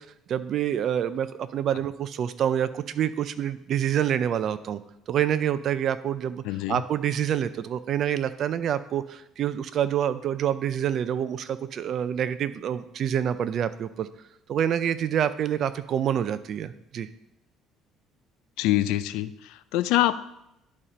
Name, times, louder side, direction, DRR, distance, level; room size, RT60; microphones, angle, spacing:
voice 1, 0.0-4.8 5.1-6.4 6.7-14.1 14.5-17.1, right 9 dB, 50° right, 13 dB, 0.5 m, -27 dB
voice 2, 6.4-6.8 18.6-20.3, left 14 dB, 85° left, 15 dB, 0.4 m, -25 dB
11.0 x 4.3 x 5.0 m, 0.86 s
cardioid pair, 130°, 0 cm